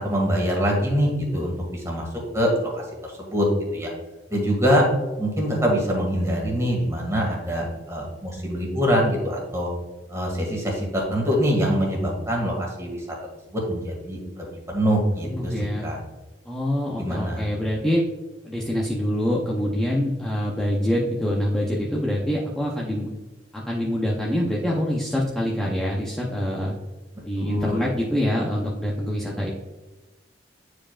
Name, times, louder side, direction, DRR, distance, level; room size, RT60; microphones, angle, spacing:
voice 1, 0.0-2.1 2.3-3.5 3.7-3.9 4.3-4.8 5.2-9.7 10.1-13.0 13.5-15.5 15.8-16.0 17.0-17.4 27.4-27.9, equal, 15° right, -1 dB, 2.0 m, -24 dB
voice 2, 15.2-15.9 16.5-18.0 18.4-23.1 23.5-26.8 27.2-29.5, equal, 5° left, -5 dB, 0.7 m, -25 dB
9.5 x 4.9 x 2.4 m, 1.1 s
head